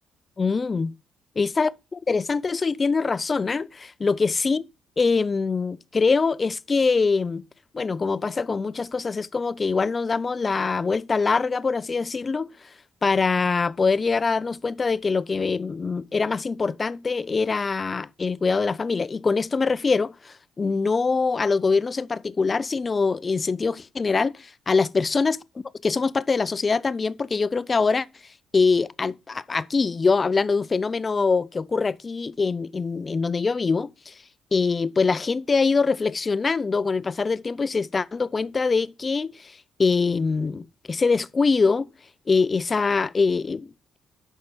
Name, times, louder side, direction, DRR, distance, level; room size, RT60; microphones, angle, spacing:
voice 1, 0.4-0.9 1.4-4.6 5.0-7.4 7.7-12.5 13.0-25.4 25.8-28.1 28.5-34.1 34.5-41.9 42.3-44.0, left 4 dB, 30° left, 0.4 m, -23 dB
8.1 x 5.5 x 5.0 m
cardioid pair, 90°, 0 cm